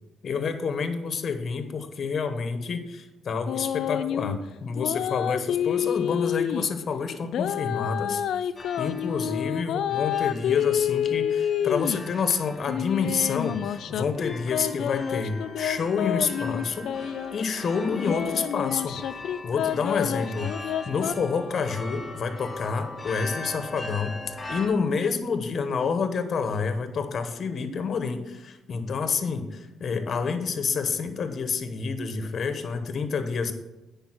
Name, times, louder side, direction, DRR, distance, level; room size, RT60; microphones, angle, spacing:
voice 1, 0.2-8.4 8.8-16.9 17.3-19.0 19.4-20.5 20.8-33.5, left 5 dB, 50° left, 8 dB, 1.1 m, -28 dB
sound 1, 3.5-4.4 4.8-6.7 7.2-12.1 12.7-17.4 17.9-21.1, left 10 dB, 75° left, 0.4 m, -28 dB
sound 2, 8.6-24.7, left 2 dB, 20° left, 1.8 m, -41 dB
9.2 x 5.4 x 6.1 m, 0.99 s
cardioid pair, 90°, 0 cm